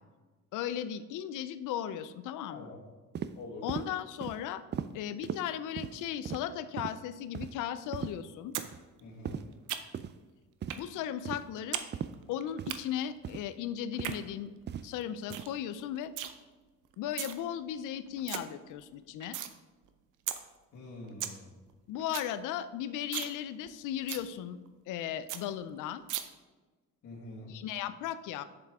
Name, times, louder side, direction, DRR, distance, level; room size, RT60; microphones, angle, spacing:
voice 1, 0.5-2.7 3.6-4.6 4.9-8.6 10.8-11.8 12.3-14.5 14.8-16.1 17.0-19.4 21.9-24.6 24.9-26.0 27.5-28.4, left 10 dB, 90° left, 13 dB, 0.5 m, -36 dB
voice 2, 2.5-2.8 3.4-3.6 9.0-9.4 20.7-21.5 27.0-27.5, left 2 dB, 70° left, -7 dB, 1.9 m, -45 dB
sound 1, 3.2-3.3 3.7-3.9 4.2-4.4 4.7-4.9 5.2-5.4 5.8-5.9 6.3-6.4 6.8-7.0 7.3-7.5 7.9-8.1 8.6-8.8 9.3-9.4 9.9-10.1 10.6-10.8 11.3-11.4 11.9-12.1 12.6-12.8 13.2-13.4 14.0-14.2 14.7-14.9 15.3-15.5, right 8 dB, 35° right, 0.4 m, -37 dB
sound 2, 8.5-8.7 9.0-10.1 10.7-10.9 11.2-11.9 12.1-12.8 13.8-14.2 14.6-14.7 15.0-15.1 15.3-15.5 15.8-16.3 16.9-17.3 17.8-17.9 18.1-18.4 18.8-19.5 19.9-20.0 20.3-20.4 20.8-20.9 21.0-21.4 21.7-21.8 22.0-22.3 22.6-22.7 23.0-23.3 23.7-23.8 24.1-24.3 24.7-24.8 25.0-25.1 25.3-25.4 26.1-26.2, right 11 dB, 85° right, 0.7 m, -36 dB
7.9 x 6.8 x 3.6 m, 1.3 s
cardioid pair, 90°, 30 cm